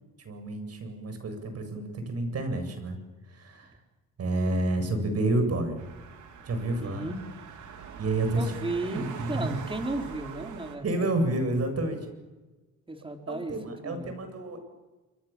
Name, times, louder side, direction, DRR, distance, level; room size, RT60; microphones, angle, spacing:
voice 1, 0.2-3.0 3.3-3.7 4.2-5.8 6.5-7.1 8.0-8.4 8.9-9.6 10.8-12.1 13.3-14.6, right 2 dB, 55° right, 7 dB, 7.9 m, -29 dB
sound 1, 5.8-10.8, right 7 dB, 75° right, 4.3 m, -43 dB
voice 2, 6.8-7.2 8.3-11.3 12.9-13.5 13.8-14.1, right 2 dB, 15° right, 4 dB, 4.6 m, -35 dB
29.5 x 24.0 x 7.4 m, 1.2 s
cardioid pair, 90°, 30 cm